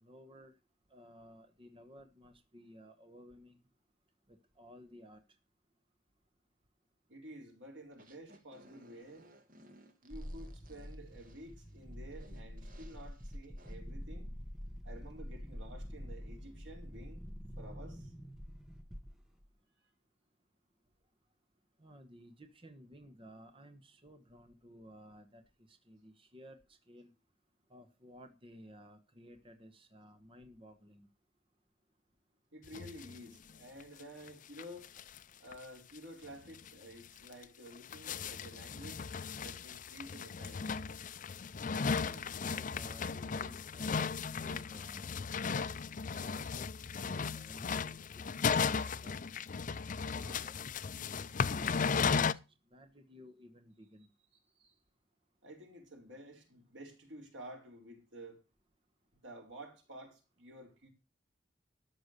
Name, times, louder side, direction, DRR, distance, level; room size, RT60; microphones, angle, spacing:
voice 1, 0.0-0.6 0.9-3.6 4.3-5.2 21.8-25.4 25.7-27.1 27.7-31.1 42.0-45.1 46.0-46.7 47.0-49.2 50.1-52.4 52.7-54.1, equal, 30° right, 1.2 m, -56 dB
voice 2, 7.1-9.3 10.0-14.4 14.8-17.2 17.6-18.1 32.5-34.9 35.4-39.1 39.4-40.7 54.6-54.7 55.4-58.4 59.1-60.9, right 1 dB, 90° right, 4.6 m, -51 dB
sound 1, 7.9-13.8, right 1 dB, 45° right, 1.5 m, -61 dB
sound 2, 10.1-19.5, equal, 5° right, 1.2 m, -46 dB
sound 3, 32.7-33.2 33.5-33.6 33.8-33.9 34.3-34.4 34.6-35.2 35.5-35.6 36.0-36.1 36.5-36.7 37.3-52.3, left 5 dB, 45° left, 0.5 m, -36 dB
13.5 x 6.1 x 6.6 m
head